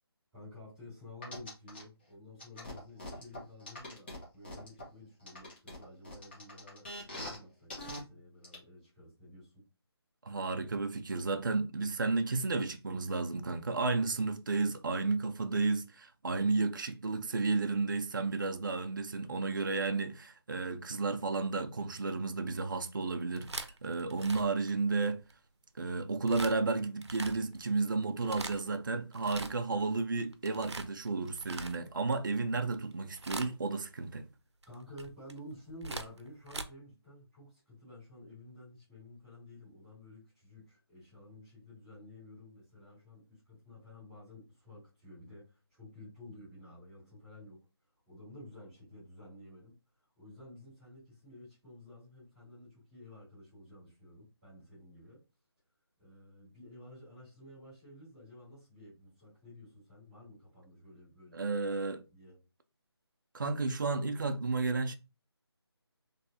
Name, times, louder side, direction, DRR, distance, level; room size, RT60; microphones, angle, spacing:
voice 1, 0.3-9.6 34.6-47.7 48.1-55.2 56.0-61.4 62.1-62.4, left 1 dB, 5° right, 2.2 m, -52 dB
sound 1, 1.2-1.8 2.4-4.8 5.3-7.4 7.7-8.0 8.4-8.5, left 1 dB, 25° left, 1.5 m, -43 dB
voice 2, 10.2-25.2 25.8-34.2 61.3-62.0 63.3-65.0, right 3 dB, 50° right, 0.5 m, -32 dB
sound 2, 23.2-25.3 26.3-26.6 27.0-27.6 28.1-28.7 29.1-29.8 30.1-32.1 32.7-32.9 33.2-33.8 34.6-36.6, right 3 dB, 90° right, 0.8 m, -42 dB
4.2 x 3.2 x 2.8 m
figure-of-eight pair, 170°, 14 cm